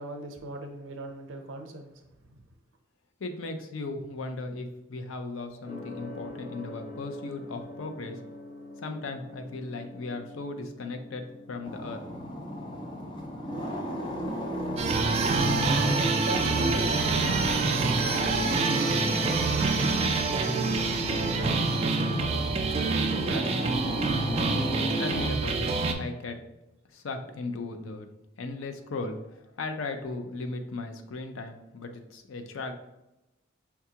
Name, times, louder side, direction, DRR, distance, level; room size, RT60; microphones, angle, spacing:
voice 1, 0.0-1.9 2.3-2.4 14.3-14.4 16.2-23.6, right 2 dB, 75° right, 4 dB, 0.6 m, -39 dB
voice 2, 3.2-8.2 8.8-12.0 25.0-25.7 26.0-26.4 26.9-28.1 28.4-32.7, left 3 dB, 90° left, 6 dB, 0.5 m, -36 dB
Gong, 5.7-23.5, left 2 dB, 45° left, 1.0 m, -49 dB
sound 1, 11.6-25.3, equal, 25° left, 0.5 m, -34 dB
sound 2, 14.8-25.9, right 4 dB, 30° right, 0.3 m, -26 dB
5.6 x 2.3 x 2.8 m, 0.93 s
head